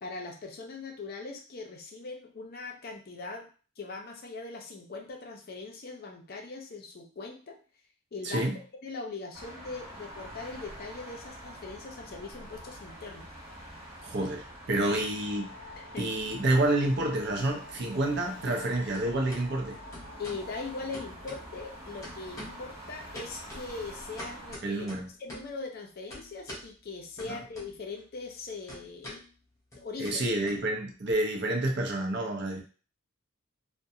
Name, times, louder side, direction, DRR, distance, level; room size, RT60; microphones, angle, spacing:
voice 1, 0.0-3.5 3.8-7.6 8.1-13.3 15.8-16.1 20.2-24.9 25.2-29.2 29.8-30.2 32.5-32.6, left 3 dB, 45° left, 2 dB, 0.5 m, -41 dB
voice 2, 8.2-8.6 14.0-15.5 16.0-19.8 24.6-25.1 27.3-27.4 30.0-32.6, right 1 dB, 55° right, 2 dB, 0.6 m, -29 dB
sound 1, 9.3-24.5, right 1 dB, 15° right, 0.9 m, -46 dB
Wind instrument woodwind instrument, 14.7-24.7, left 3 dB, 85° right, 0.9 m, -53 dB
sound 2, 16.0-16.8 17.1-18.7 18.9-19.4 19.9-20.5 20.9-21.7 22.0-22.7 23.1-25.6 26.1-26.7 27.2-28.0 28.3-31.1, left 1 dB, 15° left, 0.7 m, -46 dB
2.5 x 2.2 x 2.6 m, 0.38 s
head